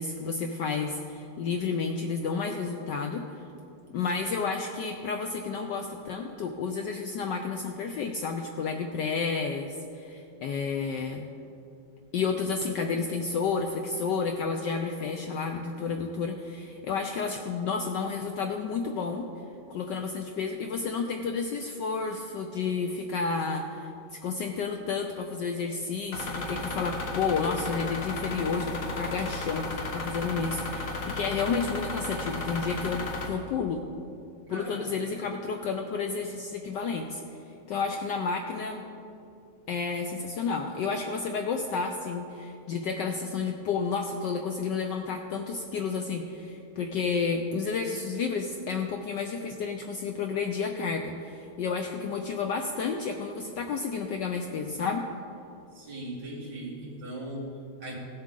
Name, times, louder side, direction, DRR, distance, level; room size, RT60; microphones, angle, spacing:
voice 1, 0.0-3.4 3.9-11.3 12.1-19.3 19.7-33.8 34.5-37.2 37.7-38.8 39.7-55.0, left 5 dB, 70° left, 4 dB, 1.1 m, -31 dB
sound 1, 26.1-33.3, left 2 dB, 45° left, 1.3 m, -34 dB
voice 2, 34.5-34.9 55.7-58.0, right 1 dB, 55° right, -5 dB, 3.0 m, -39 dB
17.0 x 7.4 x 3.7 m, 2.6 s
omnidirectional pair, 2.4 m